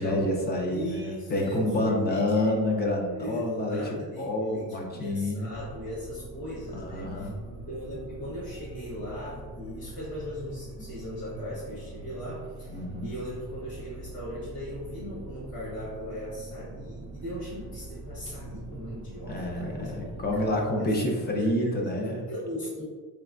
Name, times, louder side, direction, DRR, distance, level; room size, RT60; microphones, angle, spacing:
voice 1, 0.0-5.5 6.7-7.3 12.7-13.1 19.3-22.2, left 1 dB, 25° left, 0 dB, 0.4 m, -28 dB
voice 2, 0.7-2.7 3.1-7.3 7.6-20.5 20.8-21.0 21.3-21.9 22.2-22.8, left 1 dB, 45° left, -10 dB, 1.3 m, -38 dB
sound 1, 5.5-20.5, right 2 dB, 45° right, 0.5 m, -43 dB
3.3 x 3.0 x 2.5 m, 1.5 s
cardioid pair, 160°, 39 cm